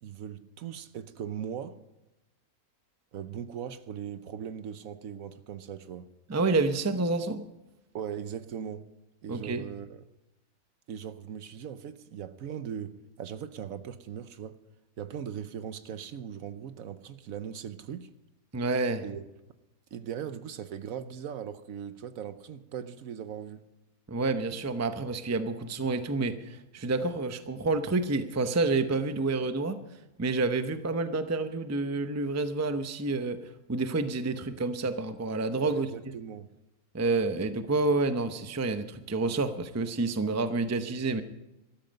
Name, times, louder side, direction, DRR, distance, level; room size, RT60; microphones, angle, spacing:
voice 1, 0.0-1.8 3.1-6.1 7.9-8.9 9.2-10.0 10.9-14.6 15.0-18.1 19.0-19.2 19.9-23.6 35.6-36.5, right 8 dB, 70° right, 1.1 m, -39 dB
voice 2, 6.3-7.4 9.3-9.6 18.5-19.0 24.1-29.8 30.2-35.9 36.9-41.2, right 3 dB, 15° right, 0.5 m, -29 dB
13.5 x 13.5 x 5.2 m
omnidirectional pair, 1.6 m